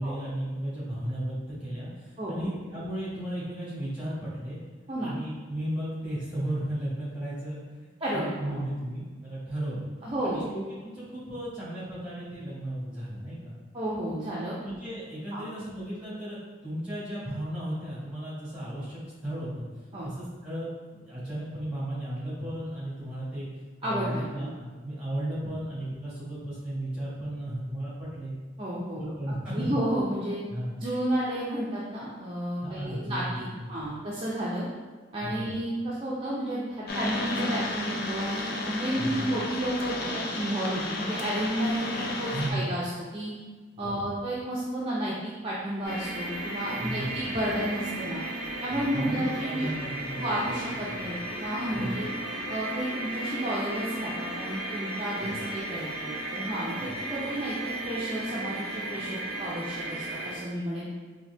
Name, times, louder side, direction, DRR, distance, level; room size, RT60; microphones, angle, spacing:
voice 1, 0.0-4.6 5.0-7.6 8.1-9.9 10.2-13.6 14.6-16.4 16.6-19.6 20.0-23.5 23.8-28.3 29.0-29.8 30.5-30.8 32.6-33.8 35.2-35.5 39.0-39.2 42.3-42.7 43.8-44.1 46.8-47.2 48.7-50.5 50.9-51.0 51.7-52.0 55.2-55.4 56.8-57.0, right 1 dB, 5° right, -9 dB, 1.4 m, -35 dB
voice 2, 2.2-2.5 4.9-5.1 8.0-8.6 10.0-10.4 13.7-14.6 15.3-15.5 19.9-20.1 23.8-24.5 28.6-30.4 30.8-34.7 35.1-43.3 43.8-48.2 48.6-49.7 50.2-52.1 52.5-57.6 57.8-60.9, right 1 dB, 25° right, -7 dB, 0.5 m, -32 dB
sound 1, 36.9-42.5, left 2 dB, 50° left, 0.5 m, -33 dB
sound 2, 45.8-60.4, right 1 dB, 15° left, 1.4 m, -35 dB
4.1 x 2.7 x 3.3 m, 1.4 s
head